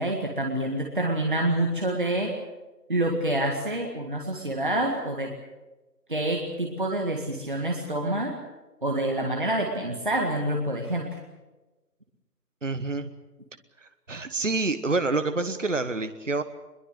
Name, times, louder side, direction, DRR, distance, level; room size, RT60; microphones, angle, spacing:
voice 1, 0.0-2.3 2.9-5.3 6.1-8.3 8.8-11.2, right 1 dB, 30° right, 0 dB, 2.0 m, -27 dB
voice 2, 12.6-13.1 13.8-16.4, right 3 dB, 50° right, 10 dB, 1.3 m, -27 dB
22.5 x 21.5 x 8.0 m, 1.1 s
figure-of-eight pair, 175°, 48 cm